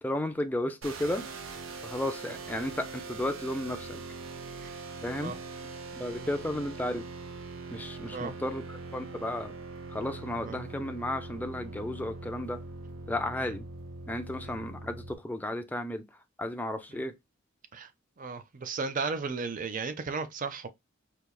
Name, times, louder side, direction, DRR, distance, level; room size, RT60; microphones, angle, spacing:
voice 1, 0.0-1.3 1.8-4.0 5.0-5.3 5.9-7.0 7.7-9.5 9.9-12.6 13.1-13.7 14.1-16.0 16.4-17.2, left 1 dB, 10° left, 0.4 m, -33 dB
sound 1, 0.8-15.1, right 3 dB, 75° right, 0.7 m, -42 dB
voice 2, 18.2-20.7, right 4 dB, 40° right, 0.5 m, -35 dB
4.5 x 2.8 x 2.2 m
head